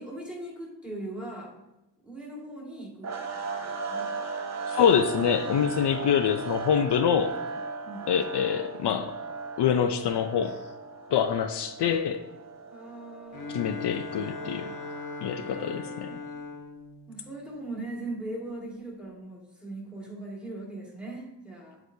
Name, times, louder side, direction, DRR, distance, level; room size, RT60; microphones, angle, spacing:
voice 1, 0.0-1.6 2.0-3.5 3.8-4.2 7.8-8.3 12.7-13.8 15.4-16.2 17.1-21.8, right 2 dB, ahead, -3 dB, 1.9 m, -40 dB
sound 1, 3.0-15.4, right 4 dB, 35° right, 0.8 m, -37 dB
voice 2, 4.7-7.4 8.1-9.1 9.6-10.6 11.1-12.2 13.5-14.7 15.2-16.1, left 8 dB, 65° left, 7 dB, 0.5 m, -25 dB
Bowed string instrument, 13.3-18.1, left 4 dB, 45° left, 1.0 m, -40 dB
8.9 x 8.0 x 2.7 m, 0.95 s
wide cardioid pair, 145°, 44 cm